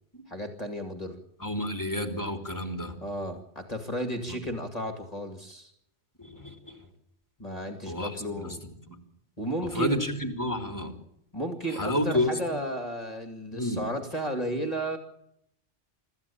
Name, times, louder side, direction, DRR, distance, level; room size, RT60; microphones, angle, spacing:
voice 1, 0.3-1.2 3.0-5.7 7.4-8.6 9.4-10.0 11.3-15.0, right 1 dB, 30° left, 5 dB, 2.6 m, -33 dB
voice 2, 1.4-3.0 4.3-4.4 6.2-6.8 7.9-8.5 8.9-9.0 9.6-10.9 11.7-12.6 13.5-13.8, left 1 dB, 15° left, 4 dB, 3.4 m, -30 dB
25.5 x 14.5 x 8.7 m, 0.75 s
omnidirectional pair, 1.2 m